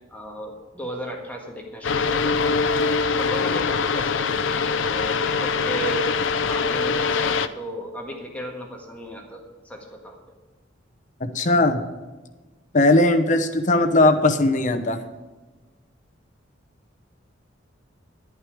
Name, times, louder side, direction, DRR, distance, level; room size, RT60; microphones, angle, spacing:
voice 1, 0.0-2.6 3.2-6.1 6.4-10.4, right 1 dB, 10° left, 0 dB, 1.6 m, -35 dB
sound 1, 1.8-7.5, left 5 dB, 80° left, 0.5 m, -23 dB
voice 2, 11.2-11.8 12.7-15.0, left 2 dB, 40° left, 8 dB, 0.9 m, -19 dB
11.0 x 11.0 x 4.9 m, 1.2 s
head